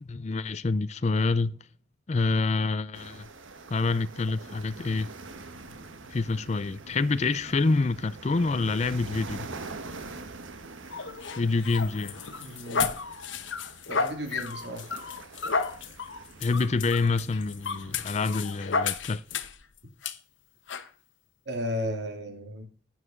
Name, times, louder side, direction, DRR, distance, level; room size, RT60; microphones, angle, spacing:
voice 1, 0.0-1.6 2.1-3.3 3.7-5.1 6.1-9.5 11.4-12.2 16.4-19.2, left 3 dB, 35° left, 0.4 m, -27 dB
sound 1, 2.9-18.4, right 3 dB, 90° right, 1.3 m, -45 dB
sound 2, 10.9-19.6 20.0-20.2 20.7-20.9, left 5 dB, 75° left, 1.0 m, -32 dB
voice 2, 12.4-12.9 13.9-14.9 21.5-22.7, equal, 60° right, 2.5 m, -34 dB
11.0 x 8.9 x 3.8 m
head